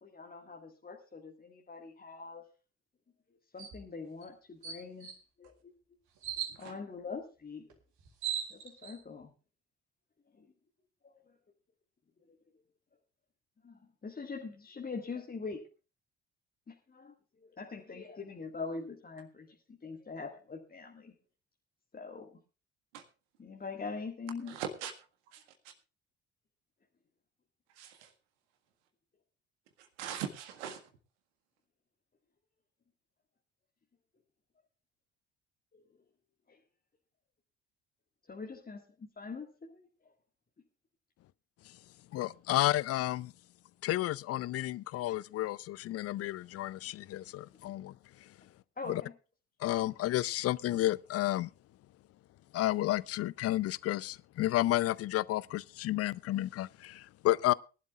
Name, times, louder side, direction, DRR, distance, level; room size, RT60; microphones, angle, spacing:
voice 1, 0.0-2.4 3.5-5.1 5.4-5.7 6.4-7.8 8.5-9.3 10.3-10.5 11.0-11.4 12.3-12.4 13.6-15.6 16.7-21.1 21.9-22.4 23.4-24.5 35.7-36.0 36.5-36.6 38.3-40.1 48.8-49.1, left 4 dB, 25° left, 1.9 m, -43 dB
sound 1, 3.6-3.8 4.2-4.3 4.6-5.2 6.2-6.5 7.7-7.8 8.0-8.9, right 9 dB, 50° right, 3.5 m, -37 dB
voice 2, 24.5-24.9 25.3-25.7 27.8-28.1 30.0-30.8, right 8 dB, 70° right, 1.7 m, -40 dB
voice 3, 42.1-43.3 43.8-47.9 48.9-49.0 49.6-51.5 52.5-57.5, left 15 dB, 40° left, 0.5 m, -31 dB
22.0 x 12.0 x 2.4 m
figure-of-eight pair, 50°, 36 cm